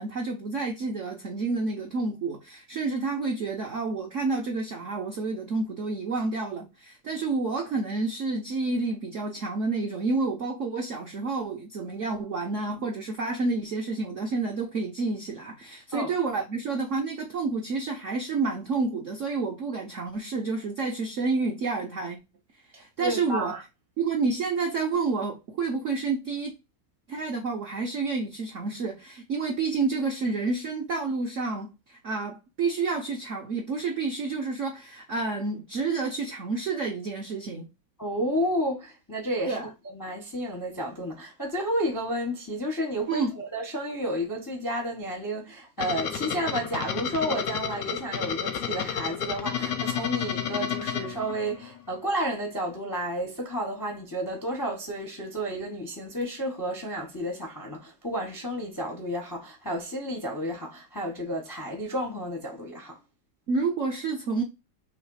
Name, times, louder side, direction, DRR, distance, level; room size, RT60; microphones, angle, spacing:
voice 1, 0.0-22.2 22.8-23.6 24.0-26.5 27.1-37.7 39.5-39.7 43.1-43.3 63.5-64.4, right 4 dB, 70° right, 0.7 m, -29 dB
voice 2, 22.7-23.6 38.0-39.7 39.9-63.0, equal, 25° left, 0.4 m, -31 dB
sound 1, 45.8-51.8, left 8 dB, 70° left, 0.8 m, -31 dB
3.2 x 3.1 x 4.6 m
omnidirectional pair, 2.2 m